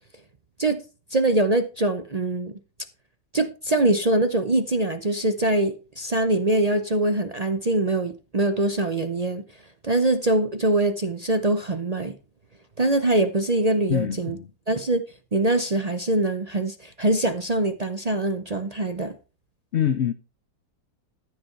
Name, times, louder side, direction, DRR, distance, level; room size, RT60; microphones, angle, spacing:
voice 1, 1.1-2.5 3.3-9.4 9.8-12.1 12.8-14.4 14.7-15.0 15.3-19.1, right 2 dB, 55° right, 0.4 m, -23 dB
voice 2, 13.9-14.5 19.7-20.1, left 9 dB, 90° left, 0.5 m, -24 dB
14.0 x 6.1 x 4.5 m
omnidirectional pair, 2.0 m